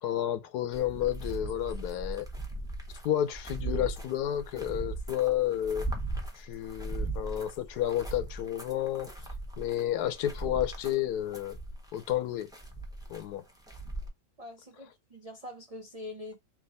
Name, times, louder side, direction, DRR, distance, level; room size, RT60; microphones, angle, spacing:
voice 1, 0.0-2.3 3.0-5.9 6.3-9.1 9.6-11.6 11.9-12.5 13.1-13.4, left 12 dB, 85° left, 1.2 m, -31 dB
sound 1, 0.7-14.1, right 2 dB, 5° right, 0.8 m, -38 dB
voice 2, 14.4-16.4, left 2 dB, 80° right, 0.3 m, -44 dB
3.4 x 2.9 x 4.0 m
omnidirectional pair, 1.7 m